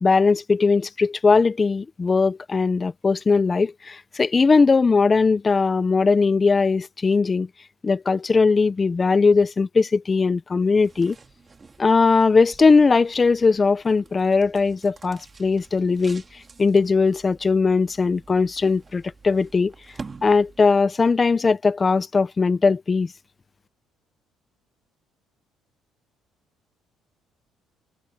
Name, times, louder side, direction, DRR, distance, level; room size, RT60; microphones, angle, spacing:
voice 1, 0.0-7.5 7.8-11.2 11.8-16.2 16.6-19.7 20.2-23.1, left 4 dB, 25° left, 0.7 m, -19 dB
sound 1, 10.6-20.9, right 4 dB, 25° right, 2.5 m, -47 dB
cardioid pair, 120°, 0 cm